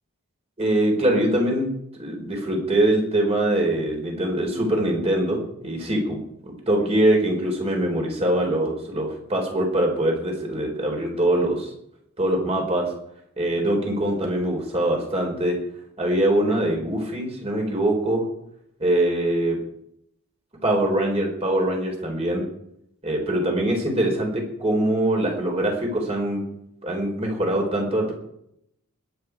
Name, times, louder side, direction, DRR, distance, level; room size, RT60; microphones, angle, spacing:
voice 1, 0.6-1.7 1.9-11.7 12.2-12.9 13.4-15.6 16.0-18.2 18.8-19.6 20.6-22.4 23.0-26.4 26.8-28.1, right 1 dB, 30° right, 1 dB, 4.5 m, -23 dB
21.0 x 9.4 x 4.8 m, 0.74 s
head